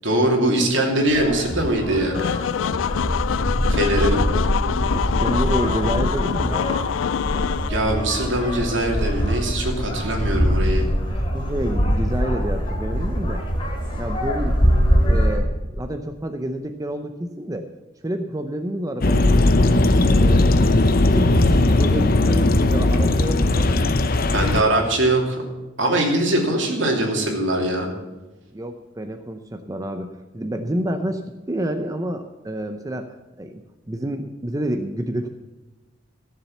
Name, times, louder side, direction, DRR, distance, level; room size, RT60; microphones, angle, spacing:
voice 1, 0.0-2.3 3.7-4.2 7.7-10.8 24.3-25.4 25.8-27.9, right 1 dB, 70° right, 1 dB, 2.8 m, -21 dB
sound 1, 1.1-15.4, equal, 25° left, 2.8 m, -23 dB
sound 2, 2.1-7.7, left 8 dB, 70° left, 0.3 m, -25 dB
voice 2, 4.0-4.4 4.9-6.7 11.3-13.4 14.0-14.6 15.1-17.7 18.0-19.4 20.1-20.5 21.1-23.9 28.5-33.1 33.4-35.3, right 1 dB, 20° right, 6 dB, 0.6 m, -29 dB
sound 3, 19.0-24.6, left 2 dB, 50° left, 0.7 m, -17 dB
15.0 x 7.2 x 7.1 m, 1.1 s
head